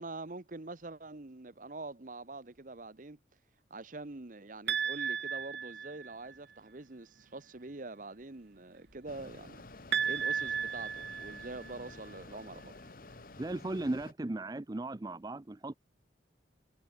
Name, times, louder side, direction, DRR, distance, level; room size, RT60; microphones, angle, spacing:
voice 1, 0.0-3.2 3.7-9.6 10.0-12.8, right 2 dB, 45° right, 1.0 m, -45 dB
sound 1, 4.7-6.3 9.9-11.9, right 7 dB, 70° right, 1.3 m, -34 dB
sound 2, 8.2-13.2, equal, 30° left, 7.8 m, -68 dB
Mechanisms, 9.1-14.1, left 3 dB, 50° left, 1.2 m, -51 dB
voice 2, 13.4-15.7, right 2 dB, 20° right, 0.5 m, -36 dB
head